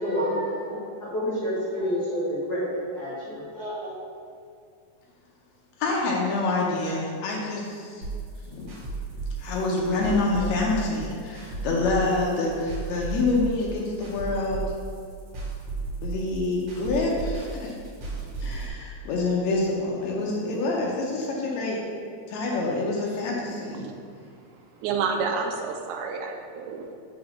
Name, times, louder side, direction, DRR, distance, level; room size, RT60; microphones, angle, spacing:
voice 1, 0.0-3.9, equal, 45° left, -11 dB, 1.3 m, -29 dB
voice 2, 5.8-8.0 8.5-8.8 9.4-14.6 16.0-17.7 18.4-21.8 22.3-23.9, left 3 dB, 75° left, -3 dB, 1.7 m, -27 dB
sound 1, 8.0-18.7, right 4 dB, 55° right, 2.4 m, -34 dB
voice 3, 24.8-26.9, right 5 dB, 80° right, 3 dB, 1.8 m, -29 dB
5.1 x 3.9 x 5.8 m, 2.3 s
omnidirectional pair, 3.7 m